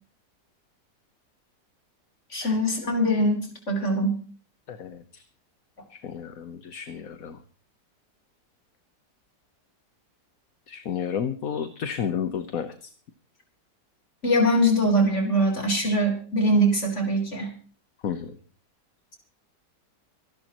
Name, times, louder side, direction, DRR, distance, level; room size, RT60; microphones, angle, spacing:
voice 1, 2.3-3.4 3.7-4.2 14.2-17.5, equal, 40° left, 1 dB, 4.4 m, -22 dB
voice 2, 4.7-5.2 5.9-7.4 10.7-12.9 18.0-18.4, left 8 dB, 55° left, 8 dB, 1.4 m, -32 dB
26.0 x 12.0 x 3.0 m, 0.41 s
omnidirectional pair, 1.9 m